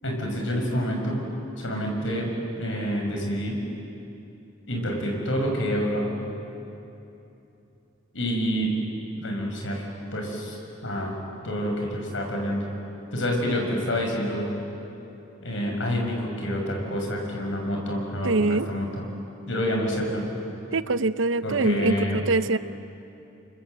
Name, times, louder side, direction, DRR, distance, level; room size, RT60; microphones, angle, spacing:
voice 1, 0.0-1.3 1.6-3.6 4.7-6.1 8.1-8.7 9.1-9.9 10.1-12.6 13.1-14.5 15.4-19.1 19.5-20.3 21.4-22.2, equal, 80° left, 1 dB, 5.9 m, -28 dB
voice 2, 18.2-18.7 20.7-22.6, right 3 dB, 80° right, 14 dB, 0.7 m, -23 dB
29.5 x 24.5 x 7.7 m, 2.8 s
head